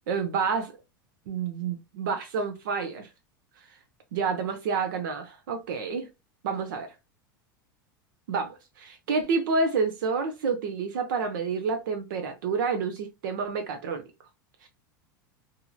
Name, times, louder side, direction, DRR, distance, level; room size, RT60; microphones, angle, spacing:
voice 1, 0.1-0.7 1.3-3.1 4.1-6.1 6.4-6.9 8.3-14.0 14.6-14.7, right 5 dB, 70° right, 0.6 m, -29 dB
2.8 x 2.6 x 2.3 m
hypercardioid pair, 90°, 11 cm